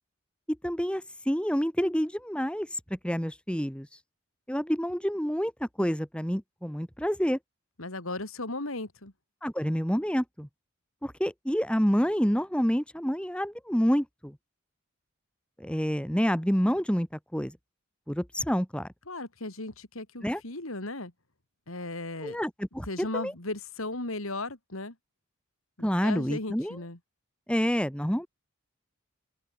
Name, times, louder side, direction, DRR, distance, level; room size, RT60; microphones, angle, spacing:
voice 1, 0.6-3.9 4.5-7.4 9.4-10.5 11.0-14.4 15.6-17.6 18.1-18.9 20.2-20.4 22.2-23.3 25.8-26.8 27.5-28.3, equal, 5° left, 2.9 m, -28 dB
voice 2, 7.8-9.1 19.1-21.1 21.7-22.4 22.9-25.0 25.8-27.0, left 2 dB, 75° left, 3.7 m, -36 dB
open air
head